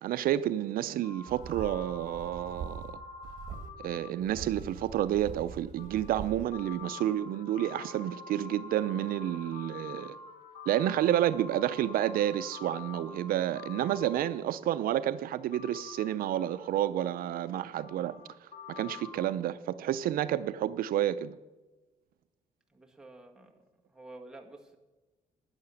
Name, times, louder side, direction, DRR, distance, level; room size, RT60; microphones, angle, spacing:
voice 1, 0.0-3.0 3.8-10.2 10.7-21.4, right 12 dB, 75° right, 0.5 m, -30 dB
sound 1, 1.0-14.8 15.5-19.3, left 5 dB, 50° left, 1.5 m, -47 dB
sound 2, 1.3-2.9 3.2-3.7 4.2-6.5, right 6 dB, 55° right, 1.6 m, -43 dB
voice 2, 22.7-23.6 23.9-24.8, right 2 dB, 5° right, 1.7 m, -50 dB
11.5 x 9.8 x 7.0 m
cardioid pair, 135°, 15 cm